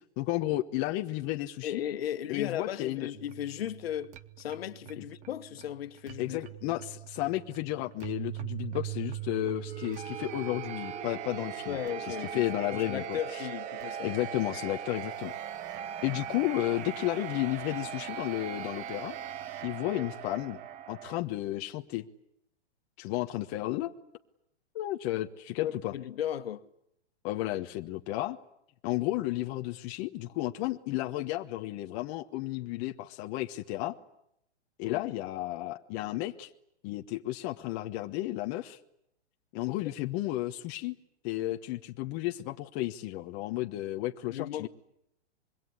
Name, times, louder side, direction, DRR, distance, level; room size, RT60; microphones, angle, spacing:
voice 1, 0.2-1.8 2.3-3.1 5.0-5.1 6.2-11.8 12.1-13.4 14.0-15.3 16.0-19.2 19.6-20.6 20.9-22.0 23.0-23.9 24.7-25.9 27.2-28.4 28.8-33.9 34.8-36.5 36.8-38.8 39.5-41.0 41.2-44.7, left 16 dB, 30° left, 1.2 m, -33 dB
voice 2, 1.6-6.4 11.7-14.1 19.9-20.1 25.6-26.6 34.8-35.0 39.7-39.8 44.3-44.7, left 10 dB, 60° left, 1.8 m, -36 dB
sound 1, 3.1-21.2, right 10 dB, 20° right, 1.1 m, -40 dB
25.5 x 22.5 x 9.7 m
hypercardioid pair, 145°, 34 cm